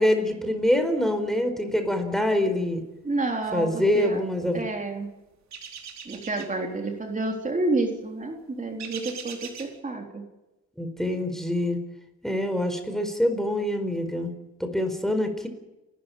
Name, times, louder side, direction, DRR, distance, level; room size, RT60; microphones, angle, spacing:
voice 1, 0.0-2.8 3.5-4.6 10.8-11.8 12.2-14.3 14.6-15.5, left 1 dB, ahead, 7 dB, 4.5 m, -25 dB
voice 2, 3.0-4.2 4.5-5.1 6.1-10.3, right 2 dB, 25° right, 2 dB, 3.6 m, -29 dB
sound 1, 5.5-6.5 8.8-9.7, right 7 dB, 65° right, 4.6 m, -40 dB
28.5 x 13.0 x 9.2 m, 1.0 s
cardioid pair, 90°, 30 cm